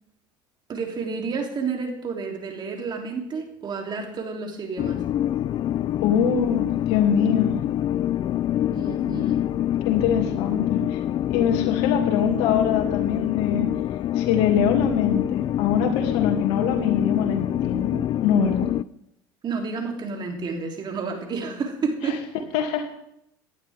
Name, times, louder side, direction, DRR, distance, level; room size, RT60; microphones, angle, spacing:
voice 1, 0.7-5.0 8.7-9.5 12.2-12.3 19.4-22.3, right 4 dB, 35° right, 2 dB, 3.3 m, -30 dB
sound 1, 4.8-18.8, left 11 dB, 40° left, 0.4 m, -25 dB
voice 2, 6.0-7.6 9.8-11.0 11.3-13.7 14.1-18.7 22.0-22.1 22.5-22.9, left 7 dB, 65° left, 2 dB, 2.8 m, -24 dB
18.0 x 11.5 x 3.7 m, 0.74 s
hypercardioid pair, 80°, 12 cm